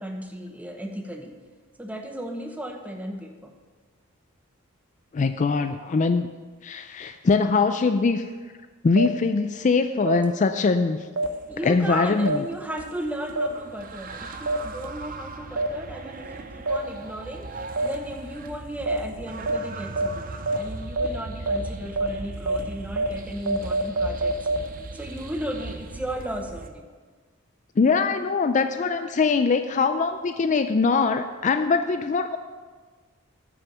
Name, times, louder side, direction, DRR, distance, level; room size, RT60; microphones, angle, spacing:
voice 1, 0.0-1.3 1.8-3.6 11.5-24.4 24.9-26.9, right 1 dB, 5° right, 4 dB, 0.9 m, -35 dB
voice 2, 5.1-6.3 6.6-8.2 8.8-11.0 11.6-12.4 27.8-32.4, left 4 dB, 35° left, 9 dB, 0.4 m, -22 dB
sound 1, 9.0-9.1 10.1-10.2 11.2-11.3 12.3-12.4 13.4-13.5 14.5-14.6 15.6-15.7 16.7-16.8 17.8-17.9 18.9-19.0 19.5-19.6 20.0-20.1 20.5-20.6 21.0-21.1 21.5-21.6 22.0-22.1 22.5-22.6 23.0-23.1 23.5-24.6, right 3 dB, 75° right, 0.8 m, -24 dB
sound 2, 11.2-26.7, right 3 dB, 45° right, 0.6 m, -39 dB
9.2 x 6.3 x 6.9 m, 1.4 s
head